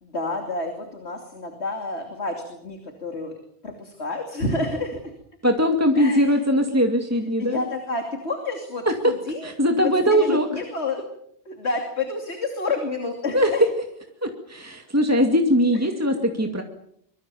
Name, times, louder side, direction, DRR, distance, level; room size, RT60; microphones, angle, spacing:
voice 1, 0.0-3.3 3.6-5.1 5.9-6.4 7.4-11.0 11.4-13.6, left 3 dB, 85° left, 4 dB, 3.2 m, -29 dB
voice 2, 5.4-7.6 8.9-9.1 9.4-10.5 13.3-13.5 14.2-16.6, equal, 15° right, 3 dB, 2.4 m, -20 dB
24.5 x 24.5 x 7.1 m, 0.71 s
omnidirectional pair, 1.1 m